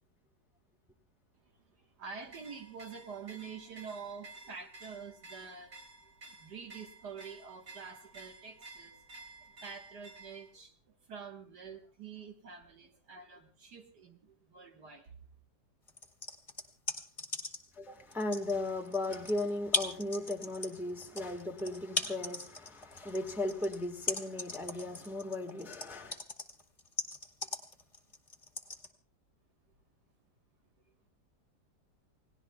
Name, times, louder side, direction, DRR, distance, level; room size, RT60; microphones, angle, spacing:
voice 1, 1.5-5.7 6.0-15.1, right 6 dB, 70° right, 2.0 m, -47 dB
sound 1, 2.2-10.5, right 3 dB, 50° right, 3.3 m, -53 dB
sound 2, 15.9-17.7 18.1-28.9, left 3 dB, 20° left, 1.8 m, -37 dB
voice 2, 17.7-26.2, left 2 dB, ahead, 1.2 m, -36 dB
29.5 x 18.5 x 2.3 m
omnidirectional pair, 1.9 m